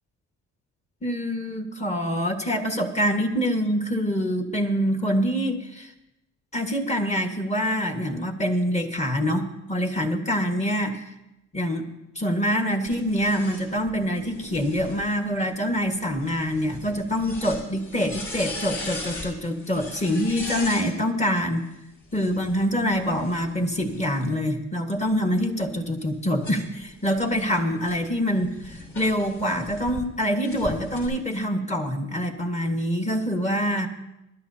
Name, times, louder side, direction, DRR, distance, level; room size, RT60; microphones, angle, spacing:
voice 1, 1.0-5.9 6.5-11.0 11.5-11.9 12.1-21.7 22.1-33.9, equal, 20° left, 4 dB, 1.7 m, -25 dB
sound 1, 12.9-20.9 22.0-24.4 25.0-30.0 30.4-31.1, left 2 dB, 45° left, 5.9 m, -40 dB
21.0 x 11.5 x 2.8 m, 0.90 s
cardioid pair, 90°, 30 cm